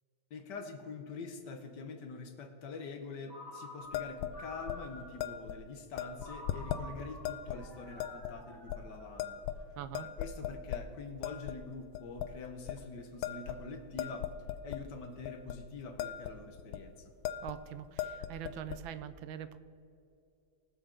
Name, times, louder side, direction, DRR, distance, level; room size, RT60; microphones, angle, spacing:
voice 1, 0.3-9.4 10.0-14.3 14.6-17.1, left 4 dB, 65° left, 6 dB, 1.5 m, -45 dB
Ringtone, 3.3-5.4 6.2-9.5, left 1 dB, 10° right, 2.3 m, -50 dB
sound 1, 3.9-4.3 4.7-4.8 5.2-5.6 6.0-6.8 7.2-7.6 8.0-8.3 8.7-8.8 9.2-9.7 9.9-10.8 11.2-11.6 11.9-12.3 12.7-12.8 13.2-14.8 15.2-15.6 15.8-16.3 16.6-16.8 17.2-17.6 17.9-18.8, left 11 dB, 85° left, 1.3 m, -38 dB
voice 2, 9.7-10.1 17.4-19.6, right 10 dB, 85° right, 13 dB, 1.4 m, -43 dB
20.0 x 6.8 x 3.8 m, 2.6 s
omnidirectional pair, 2.1 m